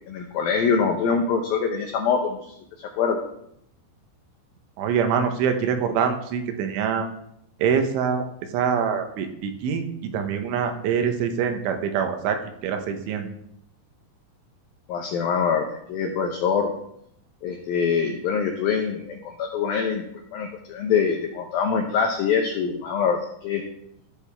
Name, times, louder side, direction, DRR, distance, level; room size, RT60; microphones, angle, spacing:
voice 1, 0.1-3.2 14.9-16.7 17.4-20.0 20.3-23.6, left 6 dB, 85° left, 2 dB, 2.1 m, -24 dB
voice 2, 4.8-7.1 7.6-8.3 8.5-13.3, right 7 dB, 85° right, 6 dB, 3.4 m, -25 dB
14.5 x 6.8 x 3.5 m, 0.74 s
omnidirectional pair, 5.4 m